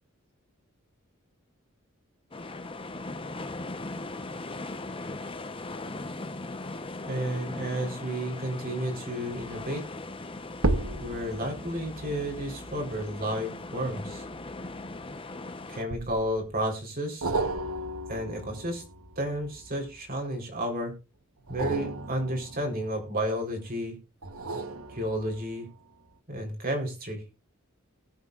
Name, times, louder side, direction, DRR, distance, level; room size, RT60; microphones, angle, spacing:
sound 1, 2.3-15.8, left 2 dB, 25° left, 1.0 m, -39 dB
voice 1, 7.0-9.8 11.0-14.2 15.7-17.3 18.1-18.8 19.2-20.9 21.5-23.9 24.9-25.7 26.3-27.2, equal, 45° right, 2 dB, 4.1 m, -32 dB
sound 2, 9.3-9.7 10.5-15.2 15.9-16.5 17.2-20.2 21.4-23.5 24.2-25.6 26.1-26.2, right 2 dB, 80° right, 1.3 m, -35 dB
19.5 x 8.4 x 2.5 m, 0.29 s
head